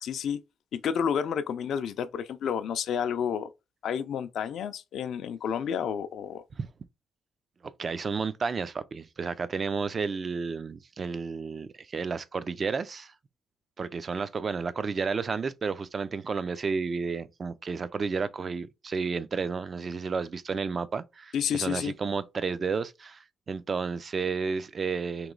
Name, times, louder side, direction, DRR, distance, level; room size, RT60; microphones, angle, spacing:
voice 1, 0.0-0.4 0.7-3.5 3.8-6.4 21.3-21.9, left 8 dB, 70° left, 0.4 m, -30 dB
voice 2, 7.8-13.1 13.8-25.3, right 5 dB, 40° right, 0.4 m, -32 dB
3.0 x 3.0 x 3.8 m
cardioid pair, 90°, 0 cm